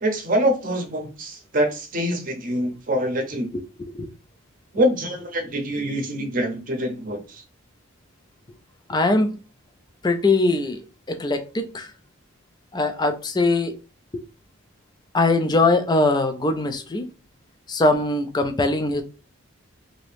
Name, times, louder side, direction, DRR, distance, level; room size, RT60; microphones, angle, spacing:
voice 1, 0.0-3.5 4.7-7.4, equal, 40° right, 0.7 m, -25 dB
voice 2, 8.9-9.3 10.0-10.8 11.1-11.9 12.7-13.7 15.1-17.1 17.7-19.0, left 2 dB, 20° left, 0.4 m, -21 dB
2.8 x 2.6 x 3.3 m
head